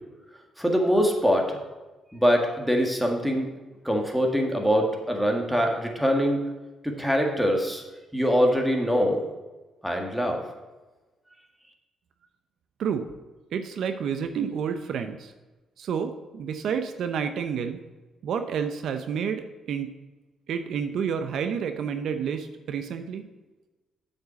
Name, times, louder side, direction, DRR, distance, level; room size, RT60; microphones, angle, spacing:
voice 1, 0.6-1.6 2.1-3.5 3.8-6.4 7.0-7.8 8.1-9.2 9.8-10.4, equal, ahead, 1 dB, 1.8 m, -23 dB
voice 2, 13.5-15.3 15.8-17.8 18.2-19.9 20.5-23.2, right 7 dB, 70° right, 8 dB, 0.6 m, -29 dB
7.9 x 5.3 x 6.9 m, 1.2 s
cardioid pair, 90°, 0 cm